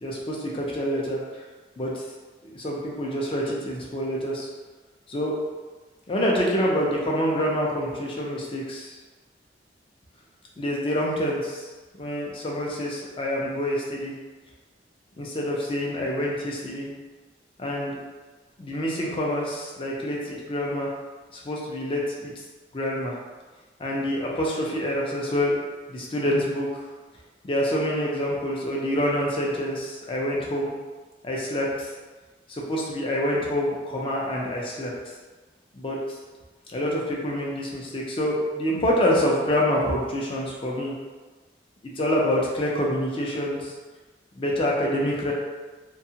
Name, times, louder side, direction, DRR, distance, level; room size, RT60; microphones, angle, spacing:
voice 1, 0.0-1.2 1.8-2.0 2.4-4.5 5.1-5.4 6.1-8.9 10.6-11.7 12.0-14.2 15.2-16.9 17.6-18.0 18.6-20.9 21.3-22.3 22.7-23.2 23.8-25.5 25.9-26.9 27.4-30.7 31.2-31.9 32.5-34.9 35.7-36.2 36.7-40.9 41.8-43.7 44.3-45.3, equal, 30° left, -3 dB, 0.5 m, -26 dB
2.7 x 2.3 x 2.8 m, 1.3 s
head